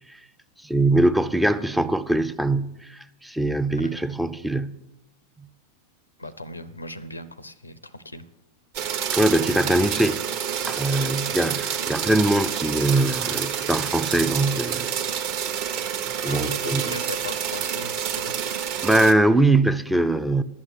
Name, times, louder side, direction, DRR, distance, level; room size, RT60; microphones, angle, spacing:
voice 1, 0.6-4.8 9.1-10.2 10.6-14.9 16.2-17.0 18.8-20.4, right 2 dB, 5° right, 0.4 m, -22 dB
voice 2, 6.2-8.2 16.3-18.4, left 2 dB, 85° left, 0.6 m, -37 dB
sound 1, 8.7-19.1, right 8 dB, 45° right, 1.0 m, -28 dB
11.0 x 8.4 x 6.5 m
figure-of-eight pair, 90°, 0 cm